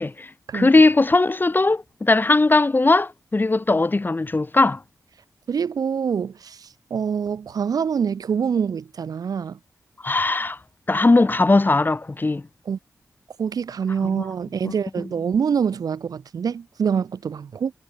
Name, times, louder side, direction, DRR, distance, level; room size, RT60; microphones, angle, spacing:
voice 1, 0.5-4.8 10.0-10.6 10.9-12.4 14.0-14.2 14.6-14.7, left 2 dB, 30° left, 1.0 m, -19 dB
voice 2, 5.5-9.6 12.6-12.8 13.4-17.7, right 7 dB, 75° right, 1.5 m, -25 dB
cardioid pair, 50°, 6 cm